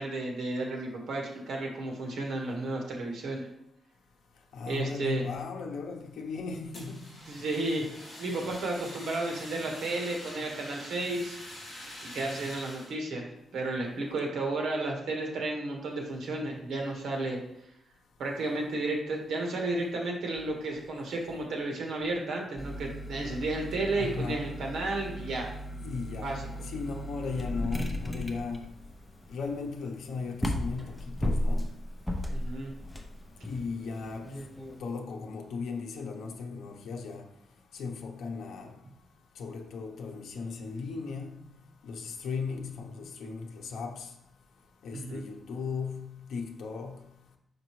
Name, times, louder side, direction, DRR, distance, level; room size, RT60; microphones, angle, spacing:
voice 1, 0.0-3.5 4.7-5.2 7.3-7.9 8.2-11.4 12.0-17.4 18.2-25.5 26.2-26.5 32.3-32.7 44.9-45.2, right 2 dB, 70° right, 1.5 m, -33 dB
voice 2, 4.5-7.0 23.9-24.5 25.8-26.3 26.6-28.6 29.3-31.7 33.4-34.3 34.8-37.3 37.7-38.7 39.4-41.4 41.8-44.1 44.8-47.0, left 5 dB, 80° left, 0.7 m, -37 dB
Fire, 6.7-12.9, left 1 dB, 25° left, 2.4 m, -45 dB
sound 1, 22.6-34.8, left 1 dB, 5° left, 0.6 m, -36 dB
5.8 x 5.1 x 3.1 m
wide cardioid pair, 170°, 0 cm